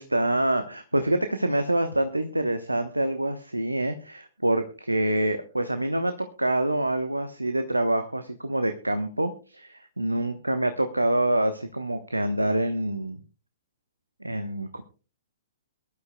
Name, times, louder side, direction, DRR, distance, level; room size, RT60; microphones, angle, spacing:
voice 1, 0.0-13.2 14.2-14.8, right 1 dB, 85° right, 9 dB, 0.9 m, -26 dB
23.0 x 12.0 x 2.2 m, 0.35 s
figure-of-eight pair, 115°, 0 cm